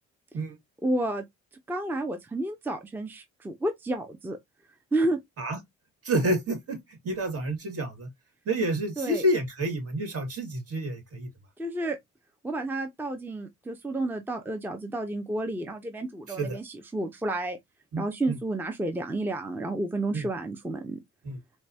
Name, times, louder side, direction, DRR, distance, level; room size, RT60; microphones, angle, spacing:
voice 1, 0.8-1.2 1.7-4.4 4.9-5.2 9.0-9.2 11.6-12.0 12.4-17.6 18.0-21.0, right 2 dB, 5° right, 0.6 m, -31 dB
voice 2, 6.0-8.1 8.5-11.3 16.4-16.6 17.9-18.4 20.1-20.2 21.2-21.4, right 1 dB, 50° right, 1.9 m, -29 dB
4.4 x 2.2 x 2.7 m
cardioid pair, 90°, 30 cm